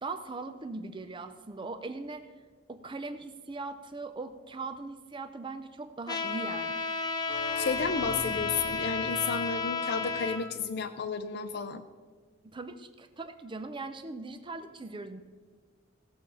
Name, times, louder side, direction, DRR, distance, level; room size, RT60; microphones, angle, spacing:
voice 1, 0.0-2.3 2.7-6.9 12.4-15.2, right 3 dB, 25° right, 9 dB, 0.5 m, -40 dB
Trumpet, 6.1-10.4, left 4 dB, 20° left, 1.0 m, -32 dB
sound 1, 7.3-11.1, right 1 dB, 5° right, 2.3 m, -44 dB
voice 2, 7.6-11.9, left 5 dB, 55° left, 7 dB, 0.5 m, -32 dB
17.0 x 6.3 x 5.6 m, 1.5 s
head